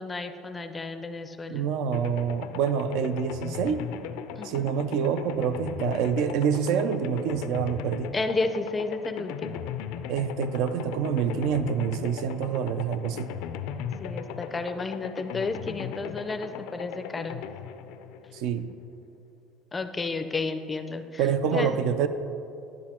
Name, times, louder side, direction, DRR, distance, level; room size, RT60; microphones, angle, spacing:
voice 1, 0.0-1.6 4.4-4.7 8.1-9.6 14.0-17.4 19.7-21.2 21.5-21.8, left 3 dB, 15° left, 9 dB, 0.4 m, -32 dB
voice 2, 1.5-3.8 4.4-8.1 10.1-13.3 18.3-18.7 21.2-22.1, right 7 dB, 70° right, 11 dB, 0.4 m, -27 dB
sound 1, 1.9-18.8, left 9 dB, 85° left, 0.4 m, -38 dB
9.9 x 7.9 x 4.3 m, 2.9 s
cardioid pair, 160°, 0 cm